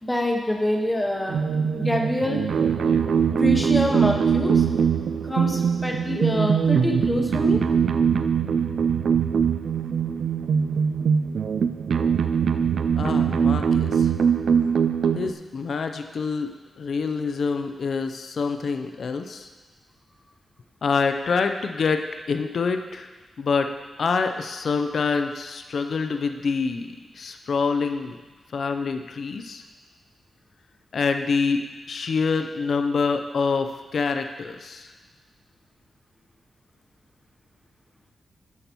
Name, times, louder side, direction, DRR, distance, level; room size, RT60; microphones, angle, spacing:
voice 1, 0.0-1.4 1.7-2.5 3.3-4.7 5.2-7.6, left 1 dB, 10° left, 1 dB, 0.9 m, -26 dB
sound 1, 1.3-15.3, right 7 dB, 70° right, 0.4 m, -22 dB
voice 2, 13.0-14.1 15.1-19.5 20.8-23.1 23.4-23.7 24.0-28.2 28.5-29.6 30.9-31.6 31.9-34.9, left 5 dB, 55° left, 6 dB, 0.5 m, -26 dB
12.0 x 5.7 x 4.5 m, 1.3 s
wide cardioid pair, 170°, 0 cm